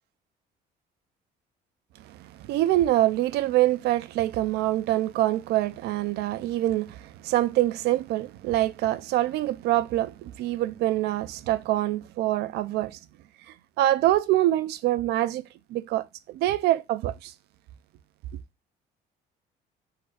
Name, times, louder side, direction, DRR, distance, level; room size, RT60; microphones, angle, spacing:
voice 1, 2.1-13.0 13.8-15.4 15.7-17.3, right 14 dB, 75° right, 0.5 m, -25 dB
4.5 x 2.4 x 4.6 m
cardioid pair, 110°, 17 cm